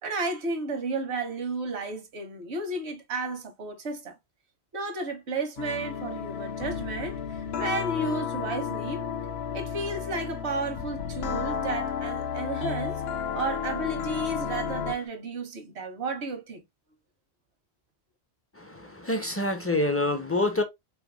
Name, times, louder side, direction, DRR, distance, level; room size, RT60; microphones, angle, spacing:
voice 1, 0.0-4.1 4.7-9.0 9.5-13.0 13.3-16.6, right 3 dB, 80° right, 1.2 m, -32 dB
sound 1, 5.6-15.1, left 7 dB, 70° left, 0.8 m, -32 dB
voice 2, 18.6-20.6, left 2 dB, 20° left, 0.4 m, -27 dB
3.5 x 3.4 x 2.2 m
omnidirectional pair, 1.1 m